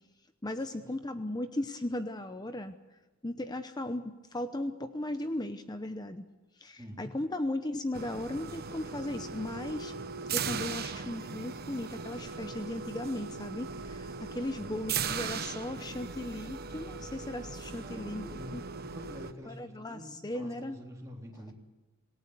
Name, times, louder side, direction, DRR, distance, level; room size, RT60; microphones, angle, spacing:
voice 1, 0.4-2.8 3.2-6.3 6.6-9.9 10.3-18.6 19.5-20.8, left 1 dB, 20° left, 9 dB, 0.8 m, -37 dB
sound 1, 7.9-19.3, right 5 dB, 50° right, 1.1 m, -38 dB
voice 2, 17.7-18.6 18.9-21.5, equal, 15° right, -2 dB, 3.8 m, -47 dB
27.0 x 17.5 x 8.2 m, 1.2 s
head